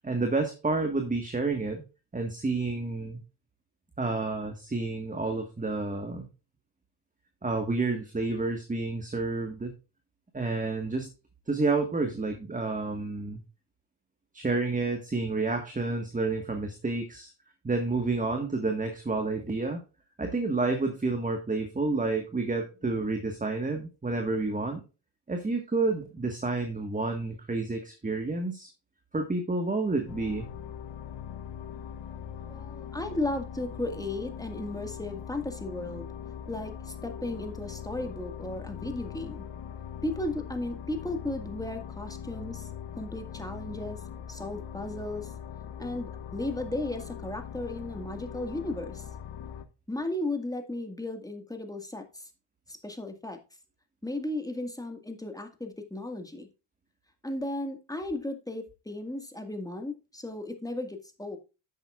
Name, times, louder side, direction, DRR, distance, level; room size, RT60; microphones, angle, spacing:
voice 1, 0.0-1.8 2.1-3.2 4.0-6.3 7.4-9.7 10.3-11.1 11.5-13.4 14.3-17.3 17.6-19.8 20.2-24.8 25.3-28.7 29.1-30.5, right 3 dB, 15° right, 5 dB, 1.6 m, -29 dB
sound 1, 30.1-49.7, left 8 dB, 55° left, 1.0 m, -41 dB
voice 2, 32.4-36.1 36.5-39.4 40.0-42.7 43.0-44.0 44.3-45.3 45.8-49.1 49.9-52.3 52.7-53.4 54.0-56.5 57.2-61.4, left 2 dB, 5° left, 5 dB, 1.8 m, -35 dB
11.0 x 8.0 x 2.5 m, 0.30 s
cardioid pair, 95°, 49 cm